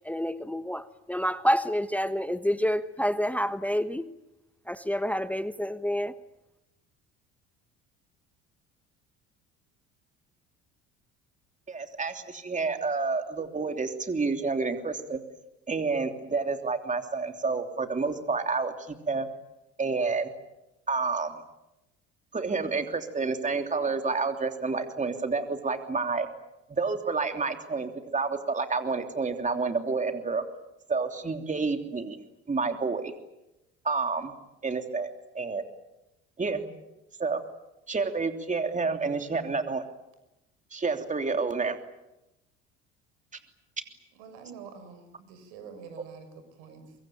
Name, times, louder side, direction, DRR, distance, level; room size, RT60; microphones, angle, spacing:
voice 1, 0.0-4.1 4.7-6.2, equal, 5° left, 12 dB, 1.2 m, -28 dB
voice 2, 11.7-15.2 15.7-19.3 19.8-20.3 20.9-21.4 22.3-26.3 26.7-30.4 30.9-32.2 32.5-33.1 33.8-34.3 34.6-35.1 35.3-35.6 36.4-36.6 37.2-37.4 37.9-39.8 40.7-41.8, right 4 dB, 20° right, 6 dB, 3.1 m, -29 dB
voice 3, 44.1-46.9, right 6 dB, 75° right, 10 dB, 6.5 m, -47 dB
24.5 x 23.5 x 9.0 m, 0.95 s
hypercardioid pair, 65°, 33 cm